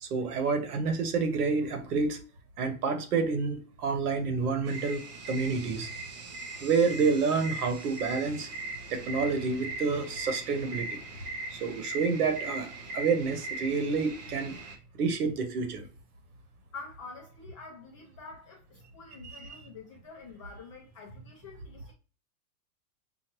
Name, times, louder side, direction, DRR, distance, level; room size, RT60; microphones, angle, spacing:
voice 1, 0.0-2.2 2.6-5.9 6.6-8.5 8.9-11.0 11.5-14.5 15.0-15.8, right 4 dB, 80° right, 1.2 m, -29 dB
sound 1, 4.7-14.8, right 2 dB, 30° right, 0.5 m, -40 dB
voice 2, 16.7-21.9, left 4 dB, 25° left, 0.4 m, -47 dB
5.1 x 2.3 x 2.9 m
supercardioid pair, 170°, 45 cm